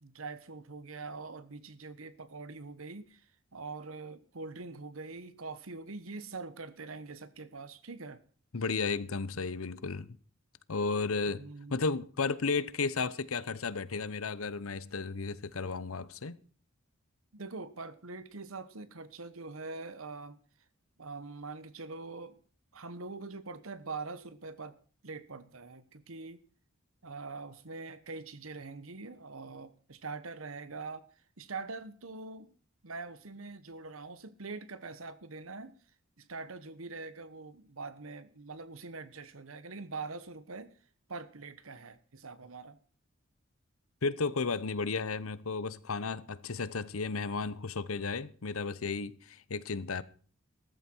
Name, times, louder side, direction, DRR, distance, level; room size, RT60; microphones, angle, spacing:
voice 1, 0.0-8.2 11.3-11.8 17.3-20.4 21.0-22.4 22.7-24.8 25.0-26.4 27.0-31.0 31.4-32.6 32.8-35.8 36.2-40.7 41.1-42.8, right 3 dB, 75° right, 1.2 m, -43 dB
voice 2, 8.5-10.1 10.7-11.4 11.7-16.4 44.0-50.0, left 4 dB, 85° left, 0.9 m, -33 dB
14.5 x 14.0 x 4.6 m
head